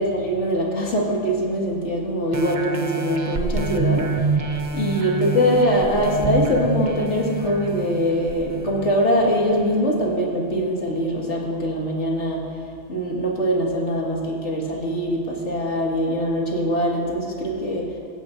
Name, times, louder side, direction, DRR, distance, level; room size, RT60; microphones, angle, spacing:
voice 1, 0.0-4.3 4.7-12.6 12.9-18.0, equal, 90° left, -2 dB, 2.3 m, -23 dB
sound 1, 2.3-9.5 10.1-10.2, right 4 dB, 45° right, 0.8 m, -27 dB
17.5 x 15.5 x 2.6 m, 2.2 s
omnidirectional pair, 1.2 m